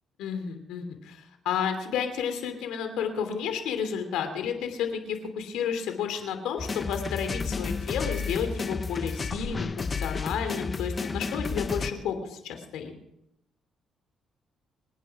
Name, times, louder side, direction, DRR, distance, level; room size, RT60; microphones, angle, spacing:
voice 1, 0.2-12.9, left 7 dB, 90° left, 7 dB, 2.9 m, -31 dB
sound 1, 6.6-11.9, left 4 dB, 35° left, 1.0 m, -32 dB
26.0 x 9.6 x 4.8 m, 0.82 s
cardioid pair, 90°, 0 cm